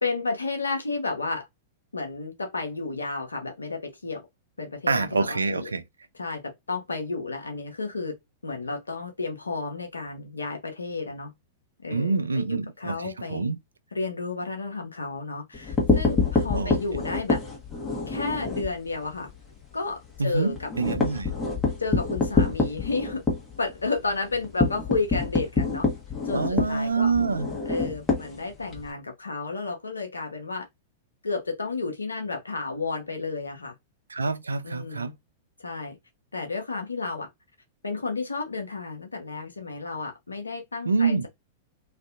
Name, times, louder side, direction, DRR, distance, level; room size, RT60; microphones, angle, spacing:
voice 1, 0.0-1.5 1.9-4.2 4.6-5.7 6.1-8.1 8.4-11.3 11.8-13.5 13.9-17.4 18.1-19.3 19.7-20.7 21.8-23.2 23.6-25.9 26.2-27.1 27.7-30.7 31.2-33.7 34.6-35.1 35.6-36.0 36.3-37.3 37.8-41.3, left 3 dB, 85° left, 0.6 m, -32 dB
voice 2, 4.9-5.8 11.9-13.6 16.5-16.8 20.2-21.3 26.3-27.5 34.1-35.1 40.9-41.3, right 4 dB, 85° right, 0.3 m, -26 dB
sound 1, 15.5-18.7 19.1-19.3 19.6-19.7 20.0-28.9, left 3 dB, 15° left, 1.0 m, -26 dB
2.5 x 2.4 x 2.4 m
figure-of-eight pair, 100°, 0 cm